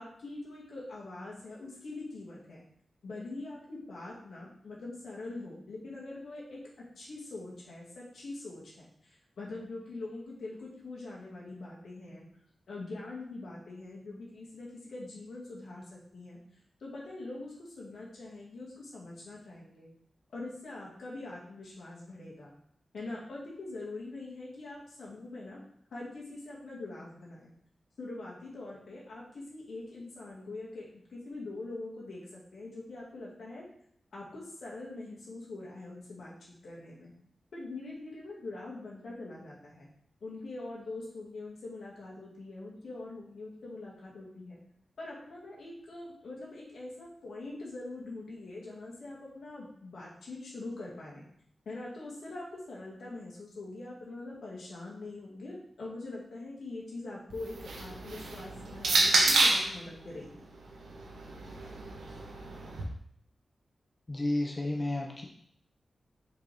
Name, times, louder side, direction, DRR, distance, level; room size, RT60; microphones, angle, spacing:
voice 1, 0.0-2.6 3.0-6.6 7.0-12.3 12.7-16.4 16.8-19.9 20.3-22.5 22.9-25.6 25.9-27.5 28.0-33.7 34.1-36.3 36.6-37.1 37.5-39.9 40.2-44.6 45.0-51.2 51.7-60.4, left 2 dB, 80° left, -5 dB, 2.1 m, -43 dB
sound 1, 57.3-59.8 60.7-62.8, right 2 dB, 90° right, 1.1 m, -29 dB
voice 2, 64.1-65.3, left 1 dB, 35° left, 0 dB, 0.8 m, -31 dB
5.3 x 5.3 x 3.5 m, 0.67 s
cardioid pair, 50°, 0 cm